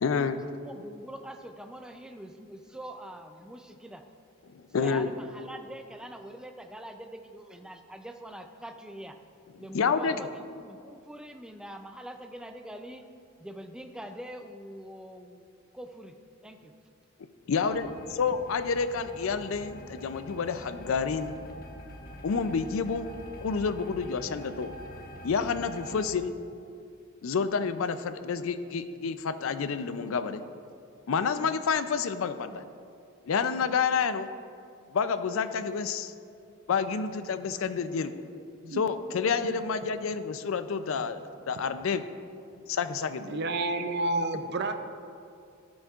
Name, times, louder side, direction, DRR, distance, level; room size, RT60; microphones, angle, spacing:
voice 1, 0.0-0.4 4.5-5.1 9.7-10.3 17.5-21.4 22.2-23.1 23.4-24.7 25.2-26.3 27.2-30.4 31.1-32.6 33.3-34.3 34.9-36.1 36.7-38.3 38.8-41.2 41.5-42.0 42.7-43.5, left 5 dB, 70° left, 11 dB, 0.4 m, -29 dB
voice 2, 0.6-4.0 4.7-9.1 9.6-13.0 13.4-15.5 15.7-16.1 16.4-16.7, right 1 dB, 5° right, 5 dB, 0.4 m, -44 dB
sound 1, 17.7-26.1, equal, 45° left, 0.9 m, -45 dB
voice 3, 43.3-44.7, right 2 dB, 55° right, 8 dB, 0.5 m, -30 dB
17.0 x 6.2 x 2.4 m, 2.4 s
head